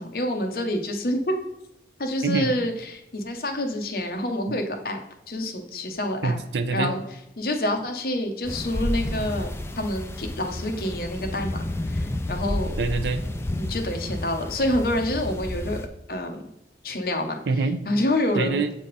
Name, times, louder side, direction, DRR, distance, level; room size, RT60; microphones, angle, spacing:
voice 1, 0.0-1.4 2.0-5.0 5.3-6.4 6.7-7.0 7.4-9.5 9.8-12.7 13.6-15.8 16.1-16.4 16.8-17.4 17.9-18.6, left 1 dB, 55° left, 4 dB, 0.9 m, -27 dB
voice 2, 6.2-6.9 12.8-13.2 17.5-17.8 18.3-18.7, right 4 dB, 75° right, 8 dB, 0.5 m, -25 dB
sound 1, 8.4-15.9, left 1 dB, 15° left, 0.3 m, -31 dB
7.5 x 3.6 x 4.0 m, 0.89 s
head